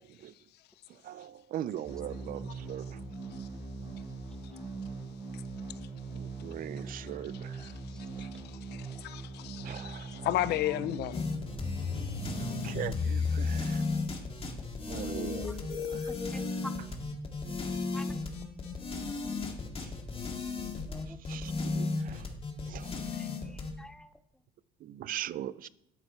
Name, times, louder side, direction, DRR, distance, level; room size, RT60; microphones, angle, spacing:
voice 1, 0.9-3.0 6.1-7.7 9.6-10.3 11.9-12.0 12.4-13.8 14.9-16.1 19.8-19.9 21.3-22.3 22.7-23.0 24.8-25.7, right 12 dB, 55° right, 0.4 m, -41 dB
sound 1, 1.8-13.8, right 3 dB, 25° right, 4.3 m, -42 dB
voice 2, 8.7-11.3, left 14 dB, 75° left, 0.6 m, -33 dB
sound 2, 11.1-23.7, left 4 dB, 35° left, 2.1 m, -34 dB
voice 3, 12.0-12.4 15.3-15.5 16.1-16.7 17.9-18.1 20.9-21.2 23.1-24.1, left 1 dB, 5° left, 0.6 m, -48 dB
11.0 x 8.1 x 4.4 m
cardioid pair, 110°, 17 cm